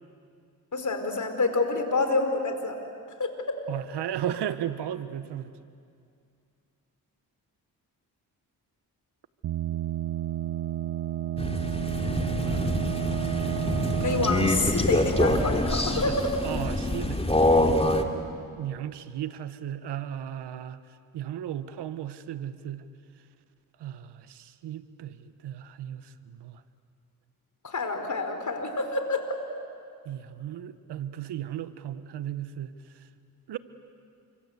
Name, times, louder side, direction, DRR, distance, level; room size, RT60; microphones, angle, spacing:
voice 1, 0.7-2.8 3.2-3.3 13.9-16.1 27.6-29.2, left 3 dB, 45° left, 6 dB, 4.6 m, -27 dB
voice 2, 3.7-5.5 9.7-9.8 12.4-13.4 14.6-14.7 15.9-16.2 16.4-17.3 18.6-20.8 21.1-22.8 23.8-26.6 30.0-32.7 33.5-33.6, right 10 dB, 90° right, 13 dB, 1.1 m, -35 dB
sound 1, 9.4-16.0, right 13 dB, 65° right, 0.7 m, -31 dB
Crow, 11.4-18.0, left 1 dB, 15° left, 2.6 m, -25 dB
29.5 x 25.0 x 8.1 m, 2.3 s
cardioid pair, 55°, 40 cm